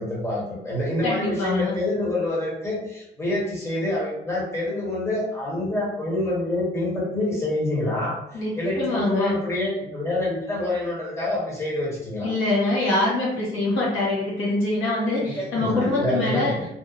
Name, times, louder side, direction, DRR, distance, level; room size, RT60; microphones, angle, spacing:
voice 1, 0.0-12.3 15.2-16.6, left 1 dB, 15° left, -5 dB, 1.2 m, -27 dB
voice 2, 1.0-1.7 8.3-9.3 12.2-16.5, left 2 dB, 80° left, -6 dB, 1.2 m, -24 dB
2.7 x 2.1 x 2.4 m, 0.83 s
cardioid pair, 90°, 20 cm